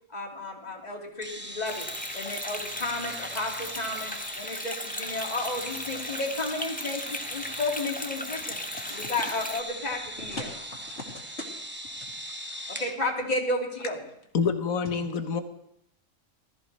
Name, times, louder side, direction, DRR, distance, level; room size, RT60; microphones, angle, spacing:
voice 1, 0.1-1.8 2.1-4.1 4.4-8.6 8.9-10.5 12.8-14.0, left 2 dB, 30° left, 0 dB, 2.4 m, -32 dB
sound 1, 1.2-12.9, right 1 dB, 10° right, 0.9 m, -40 dB
sound 2, 1.7-9.6, left 1 dB, 10° left, 0.6 m, -37 dB
voice 2, 8.4-9.1 10.3-10.4 10.9-11.5 12.6-12.7, left 2 dB, 55° left, -7 dB, 2.9 m, -41 dB
voice 3, 14.3-15.4, left 5 dB, 80° left, 8 dB, 1.6 m, -27 dB
20.0 x 14.0 x 3.2 m, 0.75 s
omnidirectional pair, 1.4 m